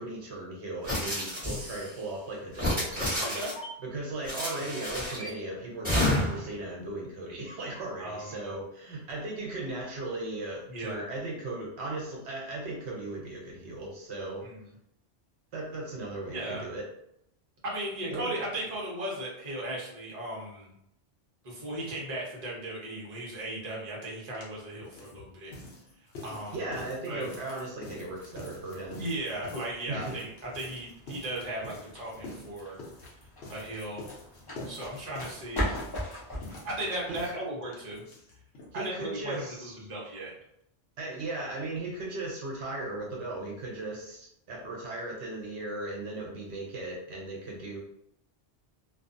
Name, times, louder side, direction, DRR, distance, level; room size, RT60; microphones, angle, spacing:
voice 1, 0.0-3.4 3.8-14.5 15.5-16.8 18.1-18.3 26.5-29.0 29.9-30.2 37.1-37.3 38.7-39.8 41.0-47.8, right 2 dB, 75° right, -2 dB, 0.9 m, -37 dB
sound 1, 0.8-1.9 2.5-3.7 4.2-5.3 5.8-6.5, left 1 dB, 10° right, 1.2 m, -30 dB
voice 2, 3.2-3.5 8.0-8.5 10.7-11.0 14.4-14.6 16.3-16.6 17.6-20.7 21.4-25.5 26.2-26.6 27.1-27.2 28.9-32.8 33.5-34.1 34.7-35.7 36.6-38.0 38.7-40.3, right 1 dB, 40° right, -4 dB, 0.9 m, -36 dB
sound 2, 24.0-24.1 24.3-38.7 39.0-39.1 39.3-39.4 39.7-39.8, left 2 dB, 75° left, 0.9 m, -46 dB
sound 3, 28.1-37.3, equal, 25° left, 0.6 m, -40 dB
2.4 x 2.3 x 2.5 m, 0.76 s
omnidirectional pair, 1.1 m